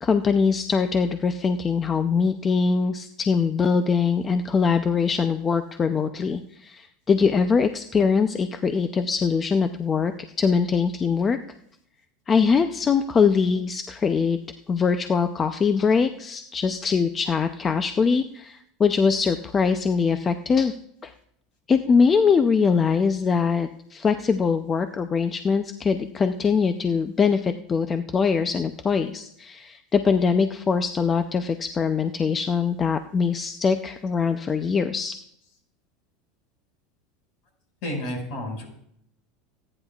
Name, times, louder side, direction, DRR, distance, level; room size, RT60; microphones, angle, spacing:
voice 1, 0.0-10.1 10.4-11.4 12.3-14.4 14.7-20.8 21.0-21.1 21.7-35.2, left 5 dB, 20° left, 9 dB, 0.5 m, -22 dB
voice 2, 37.8-38.6, left 1 dB, 55° left, 2 dB, 5.3 m, -30 dB
27.0 x 9.9 x 2.4 m, 0.72 s
supercardioid pair, 135°, 0 cm